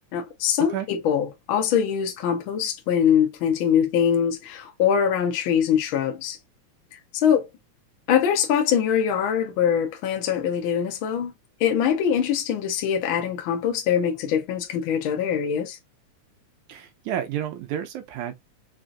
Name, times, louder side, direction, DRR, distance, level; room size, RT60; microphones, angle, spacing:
voice 1, 0.1-6.4 7.1-7.5 8.1-11.3 11.6-15.8, left 8 dB, 80° left, 1.1 m, -23 dB
voice 2, 16.7-18.4, right 10 dB, 75° right, 2.1 m, -30 dB
5.5 x 2.5 x 2.5 m
omnidirectional pair, 3.6 m